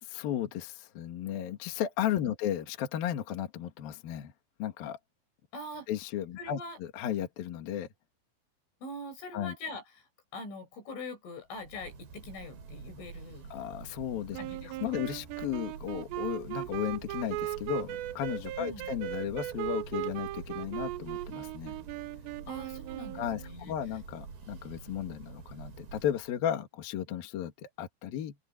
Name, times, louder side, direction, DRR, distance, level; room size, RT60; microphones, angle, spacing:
voice 1, 0.0-4.3 4.6-5.0 5.9-7.9 9.3-9.5 13.5-14.4 14.6-21.8 23.1-28.3, left 11 dB, 60° left, 3.2 m, -34 dB
voice 2, 5.5-5.9 6.4-6.8 8.8-9.8 10.3-13.5 14.4-14.9 18.6-18.9 22.5-23.7, left 2 dB, 85° left, 10.0 m, -43 dB
Church bell, 11.5-26.4, right 5 dB, 55° right, 6.3 m, -48 dB
sound 1, 14.3-23.5, right 16 dB, 80° right, 2.7 m, -38 dB
open air
omnidirectional pair, 5.4 m